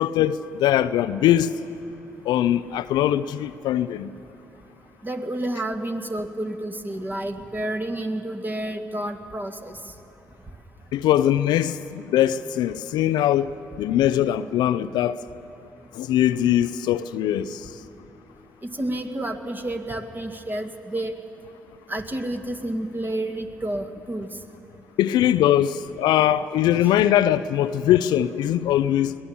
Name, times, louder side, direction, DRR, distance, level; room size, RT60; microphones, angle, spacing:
voice 1, 0.0-1.6 2.2-4.1 10.9-15.2 15.9-17.7 25.0-29.2, left 12 dB, 70° left, 0.5 m, -21 dB
voice 2, 5.0-9.8 18.6-21.1 21.9-24.3, right 1 dB, 25° right, 2.1 m, -30 dB
21.5 x 16.5 x 7.2 m
hypercardioid pair, 45°, 8 cm